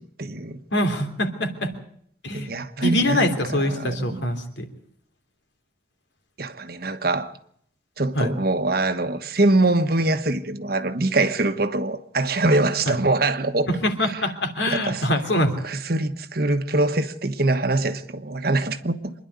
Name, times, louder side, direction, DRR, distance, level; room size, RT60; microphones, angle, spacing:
voice 1, 0.0-0.6 2.3-4.2 6.4-7.3 8.0-13.7 14.7-15.0 15.6-19.1, right 2 dB, 50° right, 1.3 m, -23 dB
voice 2, 0.7-1.7 2.2-2.5 2.8-4.7 8.1-8.3 12.9-13.0 13.7-15.5, left 1 dB, 70° left, 3.2 m, -24 dB
26.0 x 11.0 x 9.5 m
head